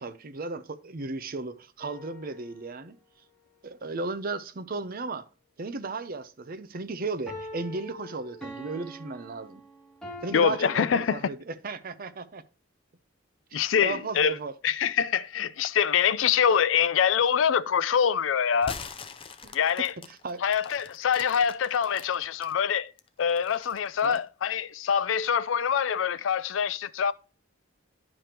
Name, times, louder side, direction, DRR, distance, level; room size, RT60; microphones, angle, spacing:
voice 1, 0.0-3.0 3.6-5.3 5.6-9.6 10.2-12.4 13.5-14.5 19.4-19.5 20.2-20.4 24.0-24.2, right 3 dB, 50° right, 0.6 m, -35 dB
sound 1, 1.8-2.8 7.3-10.4, equal, 5° left, 2.6 m, -43 dB
voice 2, 10.3-11.2 13.5-14.4 14.6-18.7 19.5-19.9 20.4-22.9 23.2-27.1, left 7 dB, 75° left, 0.4 m, -25 dB
sound 2, 18.5-22.5 23.0-24.3, left 5 dB, 30° left, 0.6 m, -43 dB
11.0 x 5.0 x 2.9 m
head